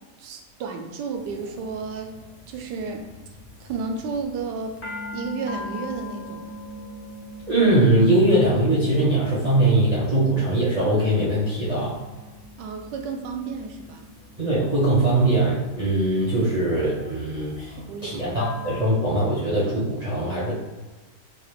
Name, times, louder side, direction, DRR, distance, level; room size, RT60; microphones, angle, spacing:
voice 1, 0.2-2.1 2.5-3.1 3.6-4.8 5.1-6.6 12.6-14.1 17.8-18.4, right 4 dB, 80° right, 3 dB, 1.2 m, -32 dB
sound 1, 1.1-18.9, left 2 dB, 50° left, 0.6 m, -42 dB
voice 2, 7.5-12.0 14.4-17.7 18.0-20.5, right 1 dB, 35° right, -9 dB, 0.7 m, -21 dB
3.7 x 2.4 x 3.3 m, 1.2 s
omnidirectional pair, 1.9 m